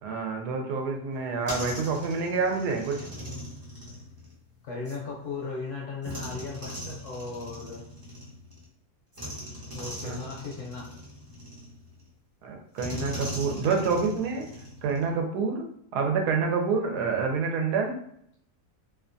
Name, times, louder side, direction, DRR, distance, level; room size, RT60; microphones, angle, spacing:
voice 1, 0.0-3.1 10.0-10.2 12.4-14.4 14.8-18.0, right 4 dB, 85° right, 2 dB, 1.2 m, -28 dB
sound 1, 1.1-5.0 6.0-8.7 9.1-12.1 12.8-15.2, equal, 30° right, 0.4 m, -40 dB
voice 2, 4.6-7.8 9.7-10.9 17.0-17.1, left 4 dB, 70° left, -2 dB, 0.8 m, -37 dB
2.8 x 2.2 x 2.5 m, 0.70 s
omnidirectional pair, 1.7 m